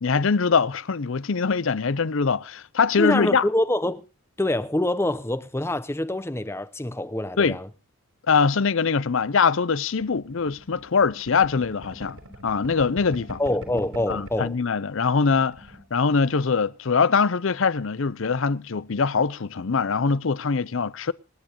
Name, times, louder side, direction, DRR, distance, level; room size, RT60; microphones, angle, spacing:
voice 1, 0.0-3.5 7.4-7.6 8.3-12.2 12.4-13.4 14.1-15.6 15.9-21.1, left 5 dB, 65° left, 0.6 m, -23 dB
voice 2, 3.0-4.0 4.4-7.7 13.4-14.6, left 1 dB, 10° left, 0.7 m, -25 dB
sound 1, 10.0-14.5 14.9-15.0 15.2-15.8, equal, 80° right, 4.9 m, -43 dB
27.5 x 10.0 x 3.0 m
head